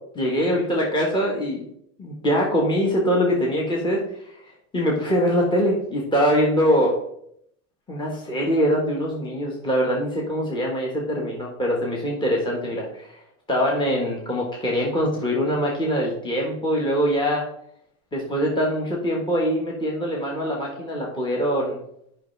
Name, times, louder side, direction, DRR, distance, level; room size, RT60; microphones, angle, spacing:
voice 1, 0.1-1.7 2.0-6.9 7.9-13.2 13.5-17.5 18.1-21.8, equal, 10° left, -2 dB, 1.4 m, -23 dB
8.3 x 5.7 x 3.3 m, 0.73 s
supercardioid pair, 125°, 37 cm